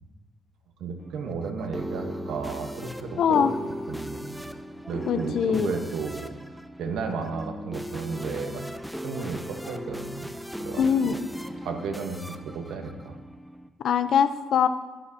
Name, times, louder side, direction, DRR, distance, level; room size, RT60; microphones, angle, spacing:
voice 1, 0.8-3.6 3.9-4.4 4.9-6.3 6.8-8.6 9.0-10.3 10.6-11.2 11.6-13.1, right 5 dB, 85° right, 4 dB, 1.1 m, -33 dB
sound 1, 1.0-13.7, equal, ahead, 0.5 m, -37 dB
voice 2, 3.2-3.5 5.1-5.7 10.8-11.2 13.8-14.7, left 7 dB, 70° left, 12 dB, 0.5 m, -22 dB
11.5 x 10.5 x 2.8 m, 1.3 s
cardioid pair, 90°, 0 cm